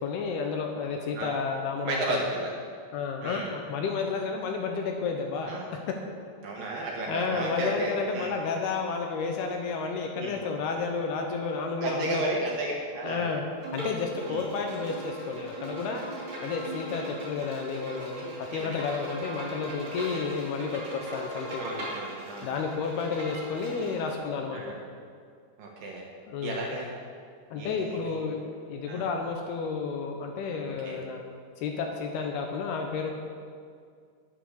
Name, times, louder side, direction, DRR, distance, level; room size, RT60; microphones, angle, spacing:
voice 1, 0.0-2.3 2.9-5.5 7.1-12.2 13.0-13.5 13.7-16.0 16.4-21.6 22.4-24.6 26.3-26.7 27.5-31.2 31.6-33.1, left 5 dB, 75° left, 2 dB, 2.6 m, -31 dB
voice 2, 1.9-2.5 3.2-3.5 5.5-5.7 6.4-8.3 10.2-10.3 11.8-13.3 14.3-14.4 18.5-18.8 21.6-22.5 24.5-24.7 25.6-26.0 26.4-26.9 27.6-28.2 28.9-29.1 30.8-31.0, right 2 dB, 65° right, -1 dB, 2.4 m, -33 dB
Bowed string instrument, 13.6-24.1, right 1 dB, 30° right, 3.4 m, -39 dB
10.5 x 9.3 x 6.5 m, 2.1 s
omnidirectional pair, 5.1 m